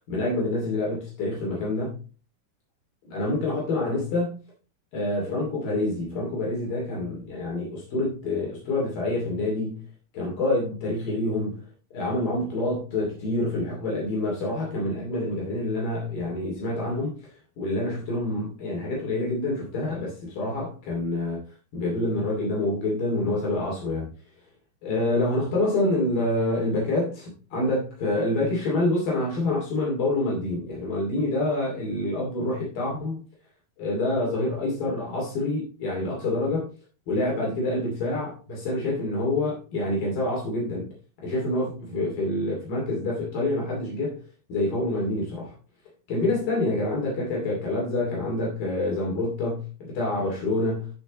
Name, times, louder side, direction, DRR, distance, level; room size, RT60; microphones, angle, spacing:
voice 1, 0.1-2.0 3.1-4.4 4.9-9.9 10.1-11.6 11.9-17.2 17.6-21.4 21.7-24.1 24.8-33.2 33.8-36.7 37.1-40.9 41.2-44.2 44.5-45.5 46.1-50.9, left 2 dB, 65° left, 4.3 m, -27 dB
15.0 x 5.8 x 3.1 m
omnidirectional pair, 4.4 m